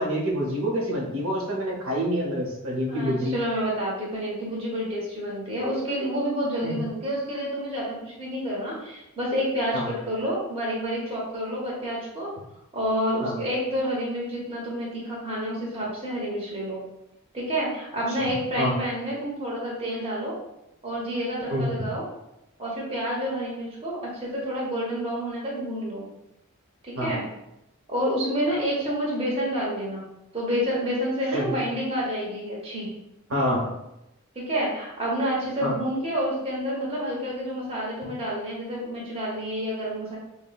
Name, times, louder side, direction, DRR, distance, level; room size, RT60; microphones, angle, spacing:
voice 1, 0.0-3.3 6.6-6.9 9.7-9.9 13.2-13.4 18.6-18.7 21.5-21.7 27.0-27.1 31.3-31.6 33.3-33.7 35.6-35.7, equal, 70° right, -3 dB, 0.8 m, -27 dB
voice 2, 2.9-12.3 12.7-16.8 17.3-20.3 20.8-22.0 22.6-26.0 26.8-27.2 27.9-30.0 30.3-32.9 34.3-40.2, equal, 25° right, -5 dB, 0.8 m, -29 dB
5.4 x 2.1 x 2.3 m, 0.87 s
head